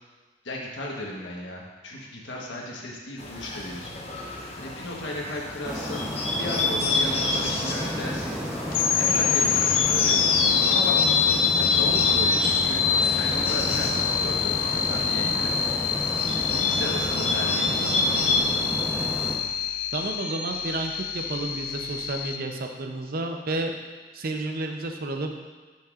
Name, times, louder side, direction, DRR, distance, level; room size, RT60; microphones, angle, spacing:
voice 1, 0.4-3.9 4.6-8.4 9.0-10.3 10.7-11.0 11.6-15.5 16.3-18.5, left 1 dB, 80° left, -2 dB, 1.3 m, -35 dB
Bird, 3.2-18.4, left 3 dB, 35° left, 0.8 m, -30 dB
sound 1, 5.6-19.4, equal, 5° right, 0.8 m, -32 dB
sound 2, 8.7-22.4, left 7 dB, 50° left, 0.4 m, -25 dB
voice 2, 19.9-23.7 24.1-25.4, right 2 dB, 55° right, 4 dB, 0.6 m, -31 dB
8.9 x 5.9 x 2.5 m, 1.3 s
head